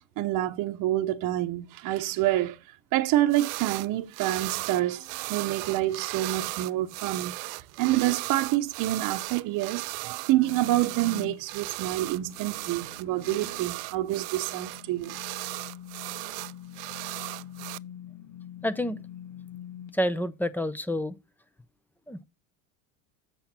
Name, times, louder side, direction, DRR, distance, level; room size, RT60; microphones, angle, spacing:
voice 1, 0.2-15.1, right 15 dB, 50° right, 0.9 m, -27 dB
sound 1, 3.3-3.9 4.1-17.8, right 26 dB, 65° right, 0.5 m, -36 dB
sound 2, 10.3-19.9, left 10 dB, 70° left, 1.7 m, -45 dB
voice 2, 18.6-19.0 19.9-21.2 22.1-22.2, equal, 5° left, 0.5 m, -28 dB
7.8 x 5.8 x 4.3 m
supercardioid pair, 110°, 42 cm